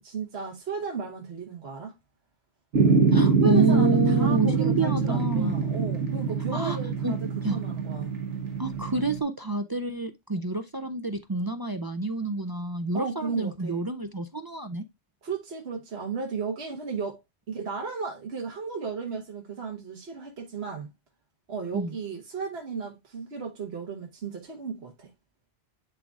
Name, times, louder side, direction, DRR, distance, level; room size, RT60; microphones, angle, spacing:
voice 1, 0.0-1.9 3.4-8.2 12.9-13.8 15.2-17.2 17.5-20.9 21.5-25.1, right 5 dB, 60° right, 1.5 m, -35 dB
sound 1, 2.7-9.2, right 5 dB, 80° right, 1.4 m, -24 dB
voice 2, 3.1-5.6 6.5-6.8 7.0-7.1 7.4-7.6 8.6-14.8 21.7-22.0, right 2 dB, 40° right, 0.3 m, -28 dB
10.5 x 3.9 x 2.3 m
omnidirectional pair, 1.2 m